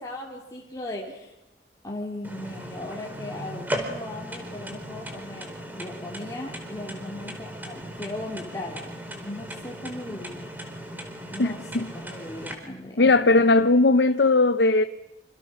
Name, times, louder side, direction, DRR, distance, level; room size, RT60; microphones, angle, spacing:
voice 1, 0.0-1.4 1.8-9.0 9.2-10.5 11.3-13.7, left 1 dB, 20° left, 3.2 m, -37 dB
sound 1, 2.2-12.5, equal, 10° right, 4.4 m, -37 dB
voice 2, 11.4-11.8 13.0-14.8, left 3 dB, 80° left, 0.9 m, -19 dB
28.0 x 27.5 x 6.5 m
head